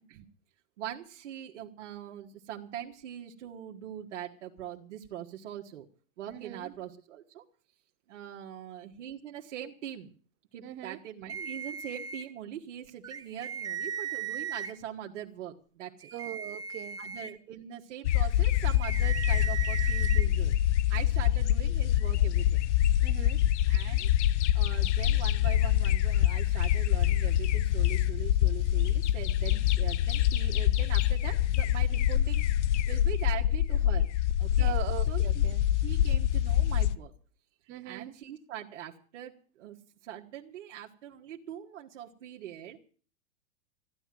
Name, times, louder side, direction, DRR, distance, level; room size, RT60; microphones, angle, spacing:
voice 1, 0.8-5.9 6.2-7.4 8.1-10.2 10.5-16.1 17.0-20.6 20.9-22.7 23.7-24.1 24.5-32.4 32.9-34.1 34.4-34.8 35.1-35.5 35.8-37.1 37.9-39.8 40.0-42.8, right 10 dB, 70° right, 1.8 m, -42 dB
voice 2, 6.3-6.7 10.6-11.0 16.1-17.0 23.0-23.4 31.9-32.3 34.6-35.6 37.7-38.1, right 15 dB, 30° right, 1.0 m, -41 dB
sound 1, 11.3-12.2 13.0-14.7 16.0-17.3 18.6-20.3, right 7 dB, 10° right, 0.7 m, -37 dB
sound 2, 18.0-37.0, left 12 dB, 65° left, 0.8 m, -25 dB
15.0 x 10.5 x 7.7 m
supercardioid pair, 145°, 38 cm